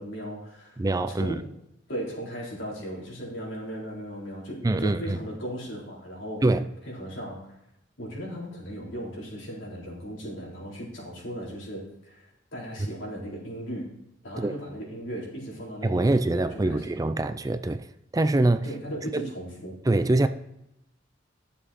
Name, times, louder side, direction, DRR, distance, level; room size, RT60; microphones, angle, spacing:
voice 1, 0.0-0.8 1.1-1.4 1.9-6.4 6.9-7.5 8.0-12.3 12.5-13.9 14.2-17.0 18.6-19.8, equal, 75° left, 4.0 m, -37 dB
voice 2, 0.8-1.4 4.6-5.2 6.4-6.7 14.4-14.5 15.8-17.9 18.1-18.7 19.1-19.3 19.9-20.3, right 2 dB, 20° right, 0.4 m, -24 dB
11.5 x 7.1 x 4.2 m
head